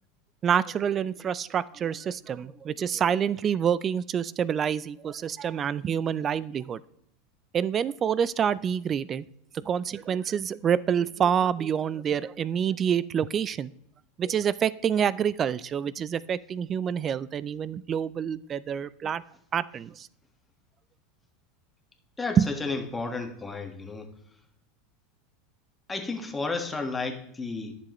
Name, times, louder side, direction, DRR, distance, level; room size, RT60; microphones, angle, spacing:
voice 1, 0.4-6.8 7.5-9.3 9.6-13.7 14.2-19.2 19.5-20.1 22.4-22.5, right 8 dB, 35° right, 19 dB, 0.3 m, -27 dB
voice 2, 22.2-24.1 25.9-27.7, left 3 dB, 15° left, 5 dB, 1.5 m, -32 dB
11.0 x 7.1 x 3.0 m, 0.77 s
hypercardioid pair, 90°, 0 cm